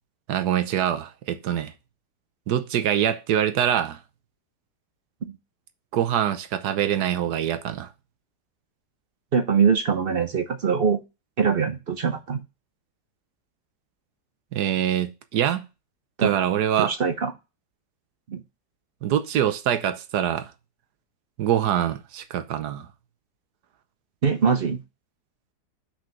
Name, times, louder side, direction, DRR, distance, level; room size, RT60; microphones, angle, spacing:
voice 1, 0.3-1.7 2.5-4.0 5.9-7.9 14.5-15.6 16.2-16.9 19.0-20.5 21.4-22.9, right 10 dB, 70° right, 1.3 m, -24 dB
voice 2, 9.3-11.0 11.4-12.4 16.2-16.3 16.8-17.3 18.3-18.4 24.2-24.8, right 6 dB, 55° right, 0.6 m, -22 dB
6.2 x 5.1 x 5.7 m
omnidirectional pair, 1.8 m